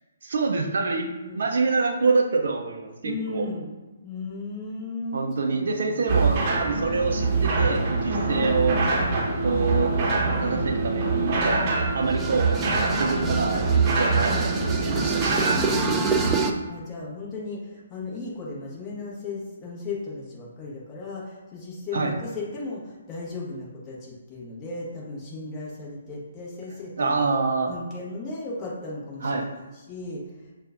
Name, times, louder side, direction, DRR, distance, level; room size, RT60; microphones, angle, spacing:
voice 1, 0.2-1.1 1.3-3.5 5.1-8.8 9.4-9.9 10.4-12.6 13.0-15.5 21.9-22.2 27.0-27.7 29.2-29.5, right 4 dB, 60° right, 1 dB, 0.5 m, -26 dB
voice 2, 3.0-3.7 4.0-6.0 8.1-8.3 11.5-11.8 15.6-16.2 16.7-27.2 27.7-30.2, left 3 dB, 20° left, -6 dB, 1.2 m, -36 dB
sound 1, 6.1-16.3, right 3 dB, 35° right, 0.9 m, -24 dB
sound 2, 12.1-16.5, right 4 dB, 15° right, 0.3 m, -28 dB
6.8 x 2.4 x 2.4 m, 1.1 s
figure-of-eight pair, 135°, 0 cm